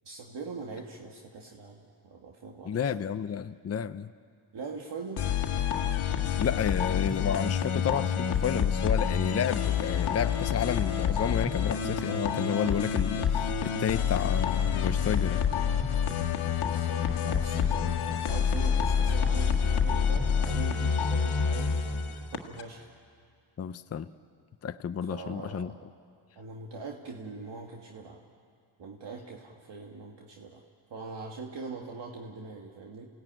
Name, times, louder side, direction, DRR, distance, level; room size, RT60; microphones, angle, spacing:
voice 1, 0.0-2.9 4.5-5.2 16.7-22.9 25.0-25.8 26.4-28.2 28.8-30.6 30.9-33.1, right 4 dB, 60° right, 0 dB, 2.2 m, -42 dB
voice 2, 2.7-4.1 6.4-15.4 23.6-24.1 24.6-25.7, left 7 dB, 30° left, 10 dB, 0.7 m, -31 dB
sound 1, 5.2-22.6, left 7 dB, 85° left, 1.7 m, -27 dB
28.5 x 17.5 x 9.1 m, 2.1 s
cardioid pair, 80°, 48 cm